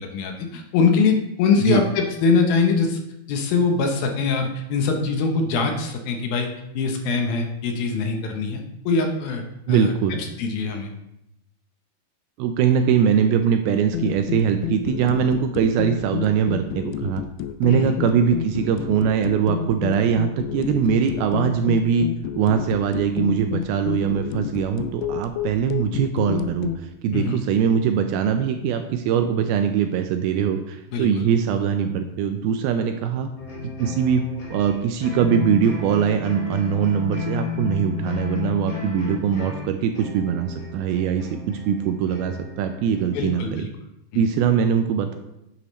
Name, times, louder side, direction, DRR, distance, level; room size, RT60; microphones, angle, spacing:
voice 1, 0.0-3.0 3.3-6.5 6.7-9.4 9.7-10.9 17.7-17.9 27.1-27.4 30.9-31.3 43.1-43.7 44.1-44.2, left 4 dB, 75° left, 3 dB, 2.6 m, -23 dB
voice 2, 9.7-10.2 12.4-17.2 17.6-22.1 22.4-33.3 33.8-34.2 34.5-43.6 44.1-45.2, right 7 dB, 80° right, 6 dB, 2.3 m, -22 dB
sound 1, 13.9-26.8, left 10 dB, 90° left, 2.7 m, -30 dB
sound 2, 33.4-43.5, left 6 dB, 40° left, 1.3 m, -33 dB
9.7 x 8.5 x 3.1 m, 0.86 s
omnidirectional pair, 4.8 m